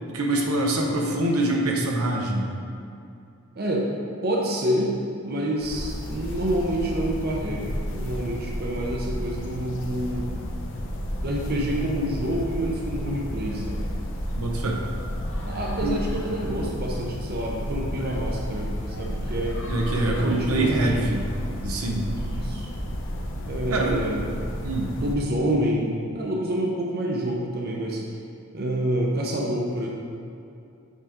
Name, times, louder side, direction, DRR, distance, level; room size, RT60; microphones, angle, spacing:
voice 1, 0.1-2.5 14.3-14.8 15.8-15.9 19.7-21.2 21.6-22.1 23.7-24.0 24.6-24.9, right 2 dB, 80° right, 0 dB, 0.9 m, -24 dB
voice 2, 3.6-3.9 4.2-4.9 5.2-10.4 11.2-13.9 15.4-21.1 22.1-22.7 23.5-24.2 24.9-28.0 28.5-29.9, right 1 dB, 45° right, -2 dB, 0.8 m, -28 dB
sound 1, 5.6-25.1, equal, 55° left, 0.7 m, -32 dB
8.2 x 5.0 x 3.6 m, 2.6 s
head